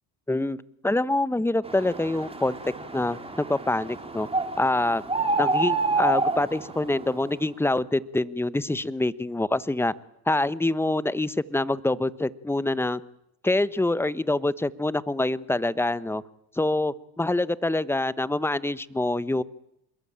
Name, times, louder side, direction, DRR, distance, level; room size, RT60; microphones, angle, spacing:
voice 1, 0.3-0.6 0.8-4.3 4.6-5.0 5.4-9.9 10.3-13.0 13.4-16.2 16.5-19.4, left 2 dB, 5° left, 16 dB, 1.1 m, -25 dB
sound 1, 1.6-7.2, right 3 dB, 10° right, 4.0 m, -28 dB
27.5 x 21.5 x 8.9 m, 0.78 s
supercardioid pair, 90°, 47 cm